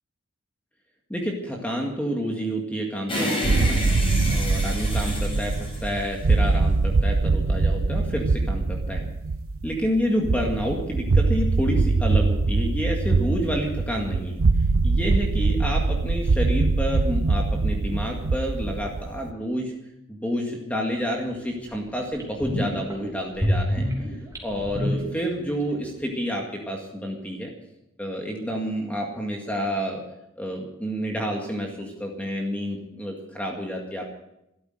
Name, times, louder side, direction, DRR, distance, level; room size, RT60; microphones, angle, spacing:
voice 1, 1.1-3.8 4.3-9.1 9.6-14.4 14.8-19.7 20.1-23.9 24.4-27.5 28.0-30.0 30.4-34.0, equal, 5° left, 0 dB, 2.0 m, -29 dB
sound 1, 3.1-6.6, left 1 dB, 25° left, 4.9 m, -29 dB
sound 2, 3.4-19.3, right 3 dB, 85° right, 0.7 m, -23 dB
sound 3, 21.1-21.2 21.7-21.8 22.1-22.9 23.4-25.6 25.9-26.0, equal, 15° right, 3.3 m, -27 dB
13.0 x 13.0 x 7.9 m, 0.84 s
head